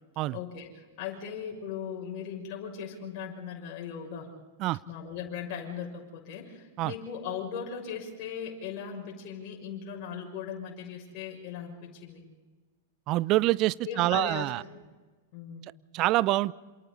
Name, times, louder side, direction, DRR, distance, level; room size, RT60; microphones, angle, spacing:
voice 1, 0.3-4.3 4.9-12.2 13.8-14.8 15.3-15.7, left 7 dB, 45° left, 0 dB, 6.7 m, -38 dB
voice 2, 13.1-14.6 15.9-16.5, right 17 dB, 40° right, 21 dB, 0.6 m, -26 dB
28.0 x 27.5 x 4.1 m, 1.3 s
figure-of-eight pair, 100°, 0 cm